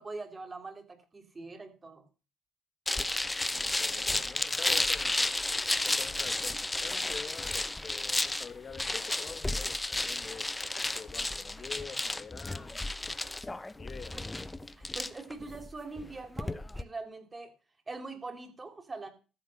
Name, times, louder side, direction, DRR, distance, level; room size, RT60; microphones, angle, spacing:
voice 1, 0.0-2.0 14.1-14.3 14.8-17.5 17.9-19.1, right 3 dB, 20° right, 3.1 m, -43 dB
sound 1, 2.9-16.8, left 2 dB, 10° left, 0.7 m, -32 dB
voice 2, 3.5-12.9 13.8-14.2, left 6 dB, 35° left, 1.9 m, -47 dB
14.0 x 7.0 x 7.5 m
cardioid pair, 125°, 0 cm